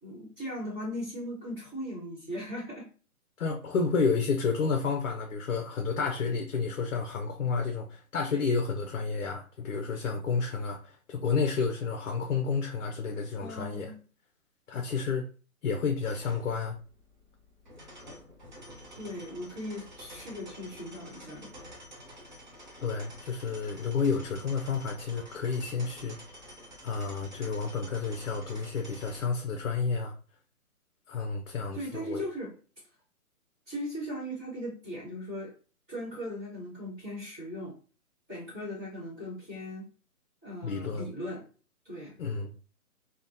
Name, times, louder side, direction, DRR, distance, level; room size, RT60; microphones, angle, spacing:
voice 1, 0.0-2.9 13.4-14.0 19.0-21.5 31.7-32.5 33.7-35.5 35.9-37.8 38.3-39.9 40.4-41.4 41.8-42.1, equal, 10° right, 1.2 m, -38 dB
voice 2, 3.4-13.9 14.7-15.3 15.6-16.8 22.8-26.2 26.8-30.1 31.1-32.2 40.6-41.1 42.2-42.5, left 5 dB, 60° left, 0.6 m, -30 dB
sound 1, 16.0-29.2, equal, 30° right, 0.6 m, -49 dB
3.5 x 2.1 x 2.6 m
hypercardioid pair, 165°, 44 cm